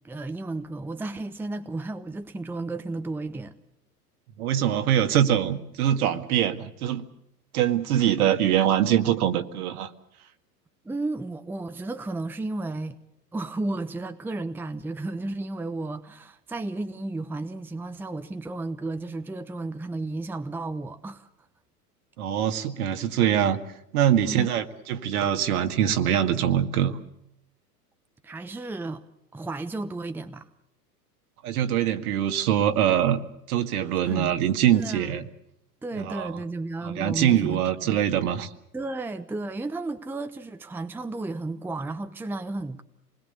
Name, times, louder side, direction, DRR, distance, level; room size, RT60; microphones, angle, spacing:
voice 1, 0.0-3.6 10.8-13.0 13.3-21.3 24.2-24.5 28.2-29.0 29.3-30.5 34.0-34.4 34.7-35.1 35.8-38.0 38.7-42.8, right 2 dB, 5° right, 0.9 m, -33 dB
voice 2, 4.4-7.0 7.5-9.9 22.2-23.6 23.9-27.0 31.4-33.2 33.5-35.3 35.9-36.3 36.8-38.5, right 10 dB, 60° right, 2.1 m, -23 dB
27.0 x 20.5 x 6.8 m
hypercardioid pair, 100°, 48 cm